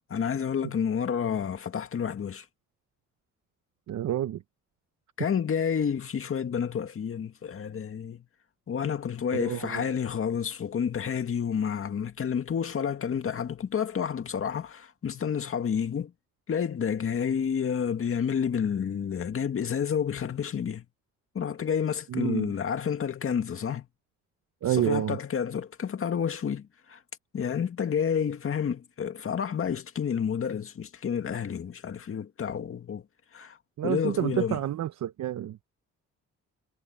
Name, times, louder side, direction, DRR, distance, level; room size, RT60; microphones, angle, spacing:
voice 1, 0.0-2.5 5.2-8.3 8.7-16.1 16.5-20.9 21.3-23.9 24.7-27.0 27.3-33.0 33.3-33.6 33.8-34.6, left 7 dB, 45° left, 2.1 m, -30 dB
voice 2, 3.9-4.4 9.3-9.9 22.1-22.5 24.6-25.2 33.8-35.6, right 11 dB, 65° right, 1.0 m, -29 dB
cardioid pair, 90°, 30 cm